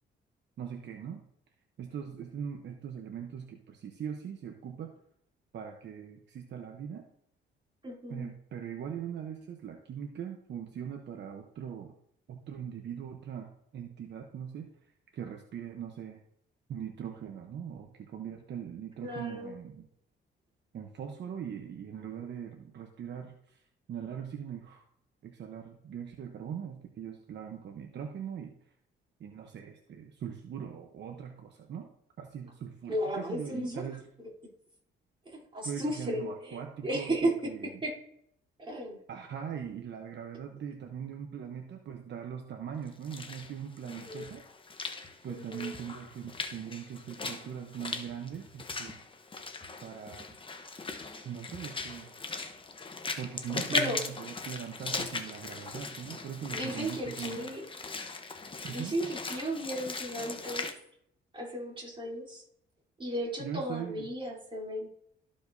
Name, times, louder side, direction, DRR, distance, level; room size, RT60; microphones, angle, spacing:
voice 1, 0.6-1.2 1.8-4.9 5.5-7.1 8.1-11.9 12.3-14.7 15.1-16.2 16.7-19.9 20.7-23.6 23.9-24.8 25.2-28.5 29.2-31.9 32.2-34.1 35.6-37.7 39.1-44.5 45.2-49.0 49.8-50.4 51.2-52.1 53.2-57.5 58.6-59.0 63.4-64.1, right 8 dB, 60° right, 4 dB, 0.9 m, -41 dB
voice 2, 7.8-8.3 19.0-19.5 32.9-33.8 35.3-37.5 37.8-37.9 38.6-39.0 43.8-44.3 45.3-45.7 53.7-54.0 56.5-57.6 58.7-60.7 61.3-62.4 63.0-64.9, right 1 dB, 25° right, -3 dB, 3.4 m, -34 dB
Walk footsteps / Splash splatter, 42.9-60.7, left 4 dB, 25° left, 0.9 m, -39 dB
13.5 x 5.1 x 2.7 m, 0.70 s
cardioid pair, 90°, 20 cm